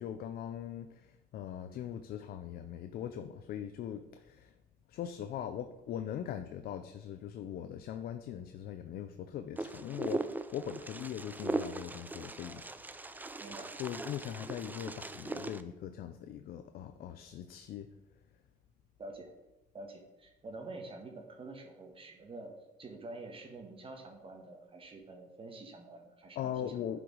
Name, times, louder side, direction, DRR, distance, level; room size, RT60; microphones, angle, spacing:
voice 1, 0.0-4.5 4.9-12.6 13.8-17.9 26.4-27.0, left 9 dB, 65° left, 9 dB, 0.6 m, -41 dB
Wind, 9.6-15.6, right 2 dB, 10° right, 0.5 m, -39 dB
voice 2, 13.4-13.7 19.0-19.3 19.7-22.5 22.8-26.8, right 2 dB, 30° right, 3 dB, 1.6 m, -47 dB
11.0 x 5.1 x 4.7 m, 1.0 s
cardioid pair, 110°, 17 cm